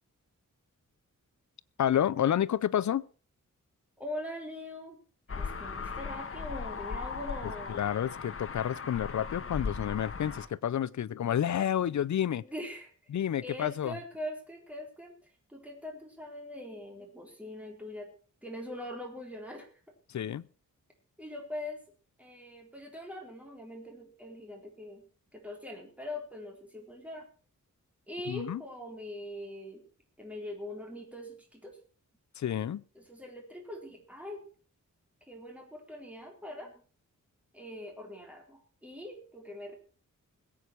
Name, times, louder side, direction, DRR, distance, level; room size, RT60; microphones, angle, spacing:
voice 1, 1.8-3.0 7.7-12.4 13.1-14.0 20.1-20.4 28.3-28.6 32.4-32.8, left 10 dB, 65° left, 0.6 m, -30 dB
voice 2, 4.0-5.0 5.3-7.8 12.4-12.9 13.4-18.1 18.4-19.7 21.2-21.8 22.2-25.0 25.3-27.3 28.1-29.8 30.2-31.8 32.9-34.4 35.3-36.7 37.5-39.7, left 1 dB, 5° right, 4.1 m, -42 dB
sound 1, 5.3-10.5, left 5 dB, 45° left, 1.3 m, -38 dB
21.0 x 8.5 x 4.5 m
wide cardioid pair, 130°, 31 cm